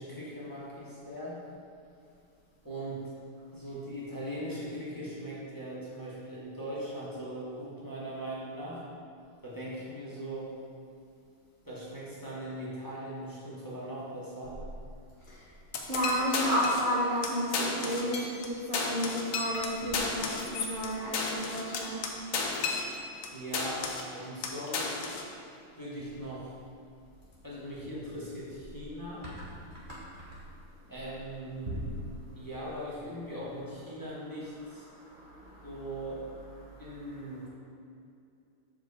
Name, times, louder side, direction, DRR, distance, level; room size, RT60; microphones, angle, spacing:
voice 1, 0.0-1.4 2.6-3.1 3.5-8.8 9.4-10.6 11.6-14.6 23.3-25.0 25.8-26.5 27.4-29.2 30.9-32.0 32.3-34.9 35.6-36.2 36.8-37.5, right 1 dB, 10° left, -8 dB, 1.2 m, -40 dB
voice 2, 15.2-15.5 15.9-22.1 29.2-29.4 29.7-30.4 31.7-31.8 34.8-35.9 36.6-36.9, equal, 40° right, -6 dB, 0.7 m, -33 dB
sound 1, 15.7-16.9 17.2-17.3 17.5-18.5 18.7-23.3 23.5-24.1 24.4-25.3, left 4 dB, 60° left, 1.1 m, -33 dB
7.4 x 6.0 x 4.2 m, 2.6 s
omnidirectional pair, 2.3 m